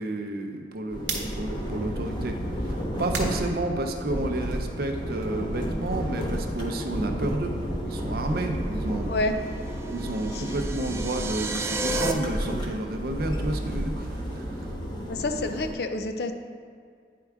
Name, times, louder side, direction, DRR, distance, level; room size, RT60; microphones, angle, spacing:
voice 1, 0.0-2.4 2.7-7.6 7.8-9.1 9.9-14.7 15.0-15.1, right 2 dB, 55° right, 4 dB, 0.6 m, -31 dB
sound 1, 0.9-15.7, equal, 25° left, 0.8 m, -32 dB
sound 2, 0.9-4.4 4.8-7.7 8.0-12.2, right 5 dB, 80° right, 1.0 m, -43 dB
sound 3, 9.6-12.1, right 2 dB, 15° right, 0.3 m, -32 dB
voice 2, 15.0-16.3, left 2 dB, 60° left, 7 dB, 0.5 m, -28 dB
9.3 x 4.6 x 3.5 m, 2.1 s
head